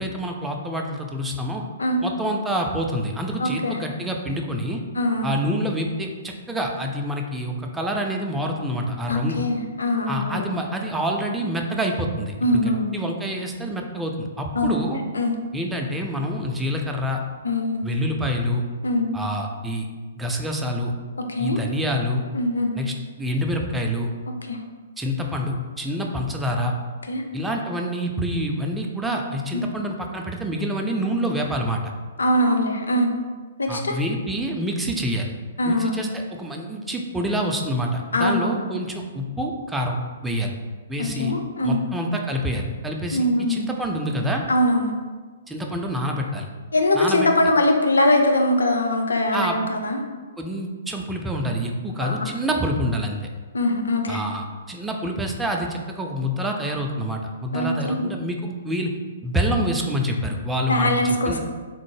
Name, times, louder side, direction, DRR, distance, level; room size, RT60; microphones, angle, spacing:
voice 1, 0.0-1.6 2.0-4.8 5.2-9.4 10.1-12.6 12.9-15.0 15.5-17.2 17.8-18.6 19.1-19.9 20.2-20.9 21.4-22.2 22.8-24.1 25.0-26.7 27.3-31.9 33.7-35.3 35.7-40.0 40.2-40.5 40.9-41.3 41.6-44.4 45.5-46.5 46.9-47.3 49.3-49.6 50.4-53.2 54.1-58.9 59.2-61.4, equal, 5° right, 1 dB, 0.3 m, -27 dB
voice 2, 3.4-3.8 5.0-5.3 9.1-10.5 12.4-13.0 14.6-14.9 15.1-15.3 17.4-17.9 18.8-19.1 21.3-21.6 22.3-22.7 24.5-24.6 27.1-27.2 29.5-29.6 32.2-33.1 33.6-33.9 35.6-36.0 38.1-38.6 41.0-41.8 42.1-42.2 43.1-43.6 44.5-44.9 46.7-50.0 51.9-52.3 53.5-54.2 57.5-58.0 60.7-61.4, left 1 dB, 70° left, 3 dB, 0.4 m, -22 dB
3.5 x 2.0 x 3.1 m, 1.4 s
figure-of-eight pair, 120°, 0 cm